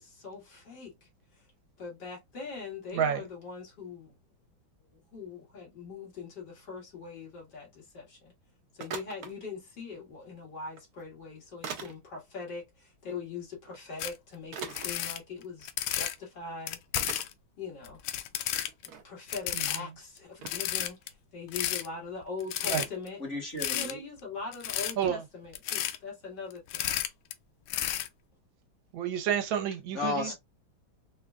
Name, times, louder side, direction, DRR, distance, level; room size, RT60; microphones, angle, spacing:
voice 1, 0.0-1.4 1.8-4.2 4.9-8.3 8.7-16.8 17.6-18.0 19.0-23.2 23.7-26.9 30.1-30.3, left 4 dB, 60° left, 2.4 m, -42 dB
sound 1, 8.8-9.3 10.7-10.8 11.6-11.9 13.7-13.8 14.5-14.9 15.8-15.9 16.2-16.3 17.0-17.2 17.9-18.0 18.4-19.0 19.7-19.8 20.4-20.7 22.7-22.8, right 6 dB, 60° right, 1.1 m, -40 dB
sound 2, 14.0-14.1 14.6-16.1 16.7-17.3 17.8-18.9 19.3-19.8 20.2-20.3 20.5-21.1 21.5-21.9 22.4-23.1 23.6-23.9 24.5-24.9 25.5-26.0 26.5-27.3 27.7-28.1, left 12 dB, 80° left, 1.3 m, -32 dB
voice 2, 23.2-24.0 29.9-30.3, left 3 dB, 40° left, 1.7 m, -34 dB
voice 3, 28.9-30.3, right 8 dB, 80° right, 1.5 m, -29 dB
4.9 x 2.2 x 2.4 m
omnidirectional pair, 2.1 m